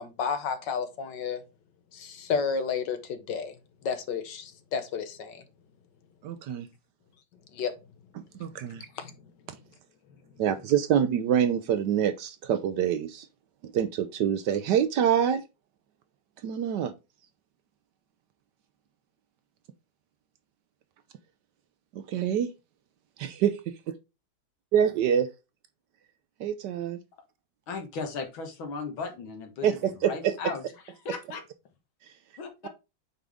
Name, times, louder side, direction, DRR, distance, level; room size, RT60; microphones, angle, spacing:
voice 1, 0.0-1.4 1.9-3.5 3.8-5.4 7.5-7.7 9.0-9.1, left 6 dB, 65° left, 1.6 m, -31 dB
voice 2, 6.2-6.7 8.2-8.9 9.5-9.6 10.4-13.3 13.6-15.4 16.4-16.9 21.9-22.5 23.2-23.6 24.7-25.3 26.4-27.0 29.6-30.3, right 9 dB, 70° right, 1.1 m, -26 dB
voice 3, 27.7-30.6 31.1-31.4 32.4-32.7, left 4 dB, 85° left, 2.2 m, -36 dB
8.2 x 3.8 x 3.5 m
omnidirectional pair, 2.1 m